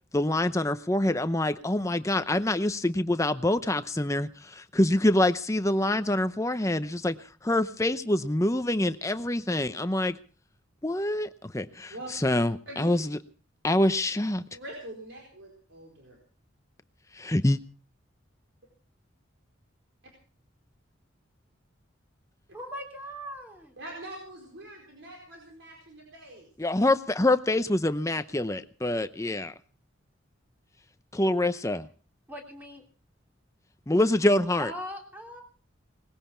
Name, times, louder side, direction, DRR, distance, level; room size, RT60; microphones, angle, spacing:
voice 1, 0.1-7.2 7.4-10.2 10.8-13.2 13.6-14.4 17.2-17.6 26.6-29.5 31.1-31.9 33.9-34.7, left 1 dB, 15° left, 11 dB, 0.7 m, -26 dB
voice 2, 14.5-16.2 23.8-26.5, right 1 dB, 70° right, 0 dB, 4.5 m, -43 dB
voice 3, 22.5-23.8 32.3-32.8 34.6-35.4, equal, 10° right, 1 dB, 3.2 m, -40 dB
20.0 x 16.0 x 4.5 m, 0.39 s
head